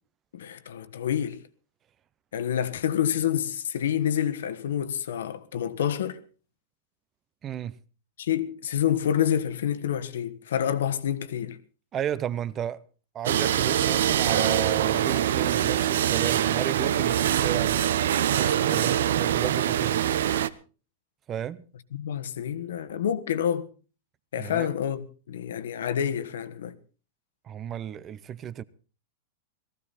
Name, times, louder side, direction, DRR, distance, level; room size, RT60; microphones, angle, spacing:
voice 1, 0.3-1.4 2.3-6.2 8.2-11.6 21.9-23.7 24.3-26.7, left 9 dB, 85° left, 1.4 m, -28 dB
voice 2, 7.4-7.8 11.9-12.8 13.1-17.9 18.4-20.0 21.3-21.6 24.4-24.7 27.4-28.6, right 9 dB, 20° right, 0.7 m, -33 dB
sound 1, 13.3-20.5, right 10 dB, 80° right, 0.9 m, -24 dB
19.0 x 15.0 x 4.2 m
supercardioid pair, 160°, 0 cm